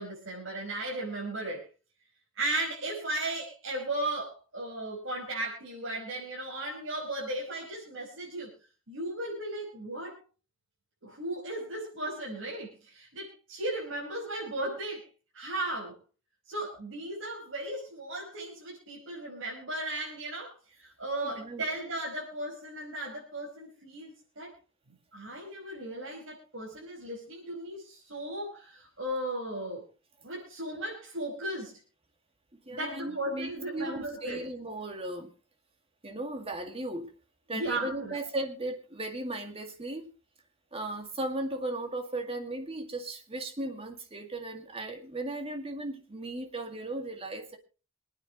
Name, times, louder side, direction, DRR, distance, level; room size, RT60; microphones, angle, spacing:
voice 1, 0.0-1.7 2.4-8.5 8.9-10.2 11.0-15.1 15.3-16.0 16.5-24.5 25.1-29.8 30.2-31.8 32.7-34.5 37.5-38.2, right 1 dB, 75° right, -4 dB, 5.4 m, -36 dB
voice 2, 21.2-21.7 32.7-35.3 36.0-37.1 37.5-40.1 40.7-47.6, right 2 dB, 30° right, 5 dB, 2.1 m, -36 dB
26.5 x 9.4 x 3.1 m, 0.34 s
head